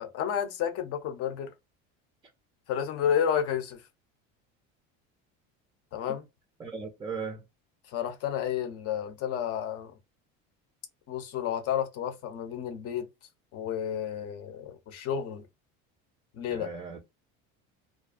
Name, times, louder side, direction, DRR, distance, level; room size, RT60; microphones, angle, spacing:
voice 1, 0.0-1.5 2.7-3.8 5.9-6.2 7.9-9.9 11.1-13.1 13.5-15.4 16.3-16.7, left 9 dB, 50° left, 0.7 m, -31 dB
voice 2, 6.6-7.4 16.5-17.0, right 5 dB, 15° right, 0.4 m, -37 dB
2.4 x 2.2 x 2.4 m
cardioid pair, 130°, 31 cm